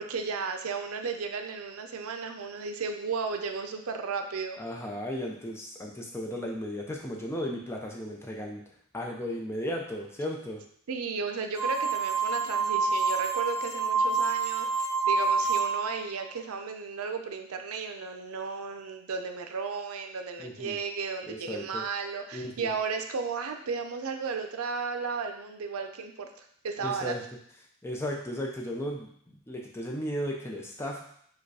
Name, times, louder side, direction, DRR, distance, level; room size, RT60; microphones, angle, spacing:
voice 1, 0.0-4.6 10.9-27.2, right 5 dB, 90° right, 6 dB, 0.5 m, -34 dB
voice 2, 4.6-8.6 8.9-10.6 20.4-20.8 21.3-21.8 22.3-22.7 26.8-27.2 27.8-31.0, equal, 10° left, -1 dB, 0.6 m, -35 dB
sound 1, 11.6-16.0, right 4 dB, 70° left, 1.1 m, -27 dB
4.7 x 2.3 x 4.7 m, 0.65 s
head